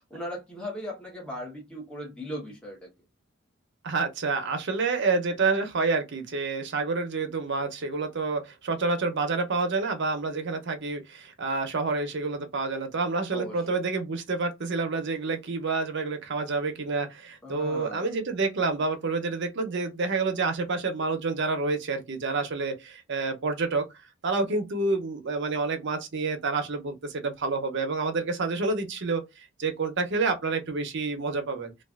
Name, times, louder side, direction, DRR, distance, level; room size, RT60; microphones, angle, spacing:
voice 1, 0.0-2.9 13.3-13.8 17.4-18.1, left 1 dB, 5° left, 1.0 m, -38 dB
voice 2, 3.8-23.9 24.2-29.2 29.6-31.8, right 3 dB, 60° right, 0.7 m, -28 dB
3.2 x 2.4 x 2.4 m
head